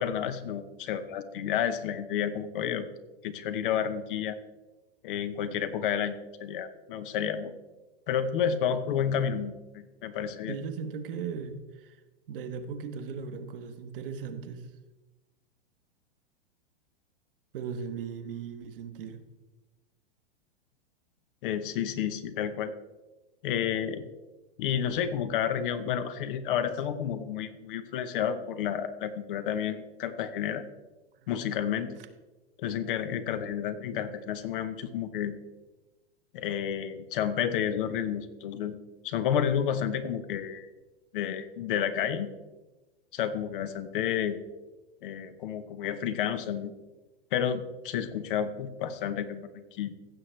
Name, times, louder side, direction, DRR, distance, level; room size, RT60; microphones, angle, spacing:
voice 1, 0.0-2.9 3.2-4.4 5.0-7.5 8.1-10.6 21.4-22.7 23.4-24.0 24.6-30.6 31.3-31.9 32.6-35.3 36.3-38.8 39.0-40.7 41.1-42.3 43.1-44.4 45.0-46.7 47.3-49.9, left 8 dB, 60° left, 11 dB, 0.9 m, -30 dB
voice 2, 10.5-12.0 12.3-14.6 17.5-19.2, right 6 dB, 65° right, 8 dB, 1.1 m, -37 dB
15.5 x 6.4 x 3.2 m, 1.1 s
hypercardioid pair, 125°, 30 cm